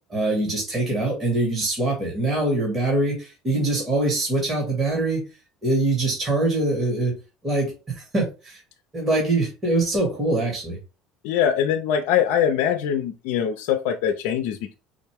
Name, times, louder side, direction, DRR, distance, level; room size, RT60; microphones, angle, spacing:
voice 1, 0.1-5.2 5.6-7.2 7.4-8.6 8.9-10.8, right 2 dB, 25° right, -2 dB, 1.8 m, -23 dB
voice 2, 11.2-14.7, left 9 dB, 80° left, 5 dB, 0.5 m, -23 dB
4.9 x 2.1 x 3.4 m, 0.30 s
supercardioid pair, 110°, 0 cm